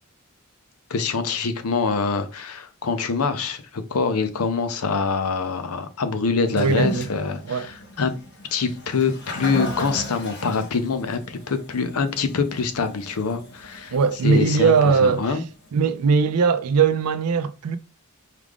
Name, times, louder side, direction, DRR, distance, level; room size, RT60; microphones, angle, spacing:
voice 1, 0.9-8.2 8.5-13.9 14.2-15.4, left 4 dB, 70° left, 0.6 m, -25 dB
Toilet flush, 6.4-15.7, left 1 dB, 55° left, 1.1 m, -36 dB
voice 2, 6.6-7.1 7.5-7.7 13.9-15.4 15.7-17.8, right 5 dB, 85° right, 0.4 m, -20 dB
4.8 x 2.4 x 3.5 m
head